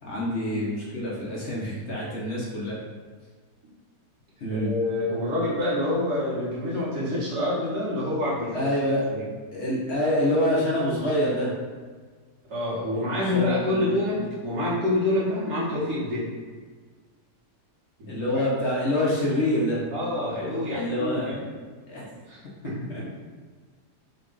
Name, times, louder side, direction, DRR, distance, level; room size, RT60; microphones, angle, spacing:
voice 1, 0.0-2.8 4.4-4.7 8.5-9.0 9.5-11.5 13.3-14.0 18.1-19.8 20.7-21.4 21.9-22.1 22.9-23.0, left 1 dB, 55° left, -5 dB, 0.8 m, -26 dB
voice 2, 4.5-8.6 9.1-9.2 12.5-16.3 18.0-18.4 19.9-21.4 22.3-23.0, left 1 dB, 75° right, -9 dB, 1.7 m, -27 dB
3.7 x 2.3 x 3.8 m, 1.5 s
omnidirectional pair, 1.7 m